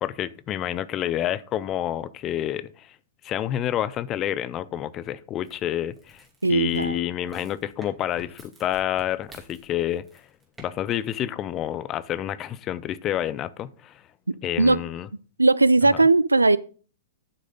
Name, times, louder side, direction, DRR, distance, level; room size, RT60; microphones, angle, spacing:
voice 1, 0.0-3.0 3.2-10.3 10.6-14.0 14.4-15.1 15.9-16.0, left 11 dB, 25° left, 0.5 m, -29 dB
sound 1, 5.4-10.7 10.9-11.2, right 2 dB, 10° right, 2.6 m, -50 dB
voice 2, 6.4-7.0 14.6-14.8 15.4-16.6, right 3 dB, 80° right, 0.4 m, -18 dB
11.5 x 6.3 x 3.8 m
figure-of-eight pair, 110°, 0 cm